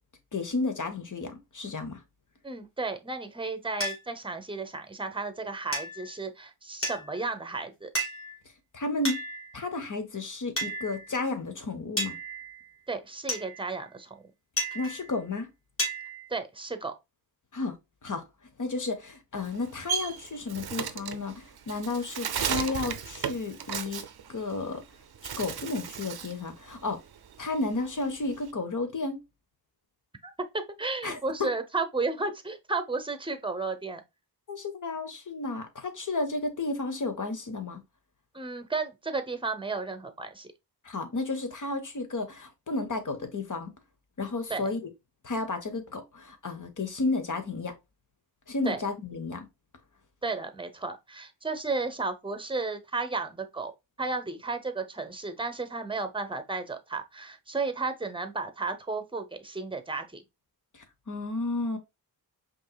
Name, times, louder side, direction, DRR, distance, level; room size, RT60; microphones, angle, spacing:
voice 1, 0.3-2.0 8.7-9.2 9.5-12.2 14.7-15.5 17.5-17.8 18.0-18.3 18.6-24.0 24.3-24.8 25.4-27.0 27.4-29.2 31.0-31.5 34.5-37.8 40.8-43.7 44.2-44.8 45.2-47.7 48.5-49.5 60.7-61.8, left 3 dB, 50° left, 1.3 m, -32 dB
voice 2, 2.4-7.9 12.9-14.1 16.3-16.9 30.2-34.0 38.3-40.5 44.5-44.7 48.7-48.8 50.2-53.7 54.0-60.2, right 3 dB, 10° right, 0.9 m, -33 dB
sound 1, 3.8-4.0 5.7-6.1 6.8-7.3 7.9-8.4 9.0-9.6 10.6-11.2 12.0-12.7 13.3-13.8 14.6-15.2 15.8-16.3, right 1 dB, 35° left, 2.4 m, -33 dB
Bird, 19.3-24.8 25.1-26.4 26.8-28.5, right 7 dB, 70° right, 0.7 m, -35 dB
5.3 x 3.2 x 2.3 m
wide cardioid pair, 70°, 40 cm